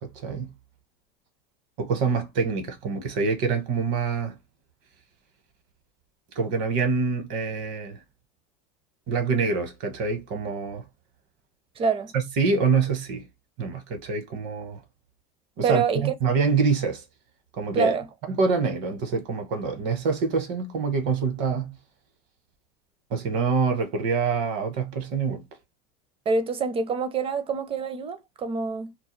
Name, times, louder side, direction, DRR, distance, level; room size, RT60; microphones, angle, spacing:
voice 1, 0.0-0.5 1.8-4.4 6.3-8.0 9.1-10.8 12.4-13.3 13.6-14.8 15.6-17.0 17.6-18.0 18.3-21.7 23.1-25.4, right 5 dB, 60° right, 1.0 m, -25 dB
voice 2, 11.8-12.1 15.6-16.1 17.7-18.1 26.3-28.9, right 5 dB, 25° right, 0.5 m, -26 dB
2.3 x 2.1 x 3.1 m
supercardioid pair, 110°, 21 cm